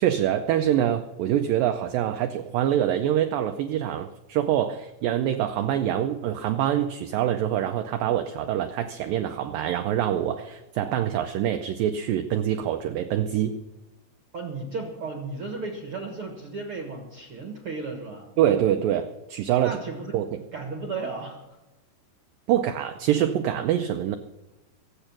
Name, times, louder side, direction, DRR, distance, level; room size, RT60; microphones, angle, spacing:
voice 1, 0.0-13.6 18.4-19.8 20.1-20.4 22.5-24.2, right 11 dB, 85° right, 7 dB, 2.0 m, -25 dB
voice 2, 14.3-18.3 19.6-20.1 20.5-21.6, right 3 dB, 60° right, 2 dB, 1.5 m, -34 dB
23.5 x 7.9 x 6.0 m, 1.0 s
omnidirectional pair, 4.8 m